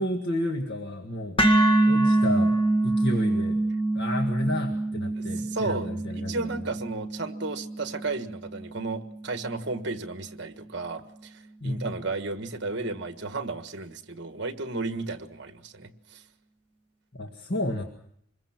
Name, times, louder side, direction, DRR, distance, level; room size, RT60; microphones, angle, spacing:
voice 1, 0.0-1.4 1.8-3.6 3.9-6.6 11.6-11.9 17.1-17.8, left 1 dB, 50° left, 3 dB, 1.8 m, -31 dB
sound 1, 1.4-9.5, right 2 dB, 25° left, 2.1 m, -25 dB
voice 2, 5.2-16.2, right 3 dB, 55° right, 8 dB, 1.6 m, -34 dB
26.0 x 22.0 x 6.0 m, 0.68 s
head